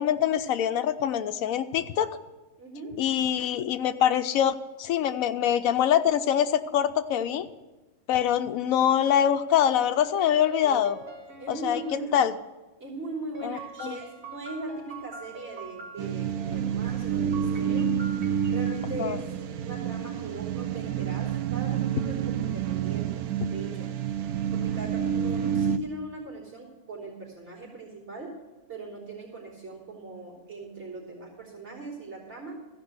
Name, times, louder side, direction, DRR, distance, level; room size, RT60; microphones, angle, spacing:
voice 1, 0.0-2.1 3.0-7.5 8.1-11.0 11.5-11.8 12.1-12.3 13.4-14.0 19.0-19.2, left 9 dB, 75° left, 10 dB, 1.0 m, -24 dB
voice 2, 2.6-3.1 11.4-12.2 12.8-18.0 18.5-19.2 19.6-23.9 24.5-28.4 28.7-32.6, right 2 dB, 50° right, -6 dB, 3.8 m, -40 dB
sound 1, 9.8-12.0 13.3-16.0 17.3-18.9, right 2 dB, 70° right, 2.3 m, -44 dB
sound 2, 16.0-25.8, right 8 dB, 85° right, 1.1 m, -28 dB
14.5 x 5.3 x 7.9 m, 1.1 s
omnidirectional pair, 1.5 m